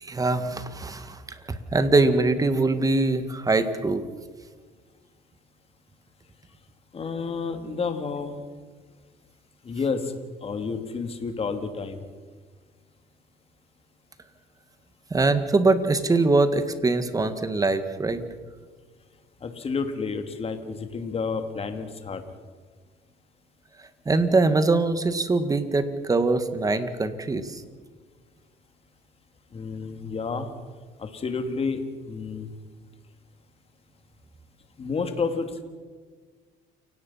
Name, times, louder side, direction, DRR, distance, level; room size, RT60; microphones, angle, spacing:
voice 1, 0.0-1.2 1.7-4.0 15.1-18.2 24.1-27.6, right 3 dB, 20° right, 10 dB, 1.8 m, -23 dB
voice 2, 6.9-8.4 9.6-10.1 10.4-12.0 19.4-22.2 29.5-30.5 31.0-31.8 32.1-32.5 34.8-35.6, left 4 dB, 35° left, 7 dB, 2.6 m, -30 dB
29.0 x 17.5 x 5.7 m, 1.5 s
cardioid pair, 110°, 17 cm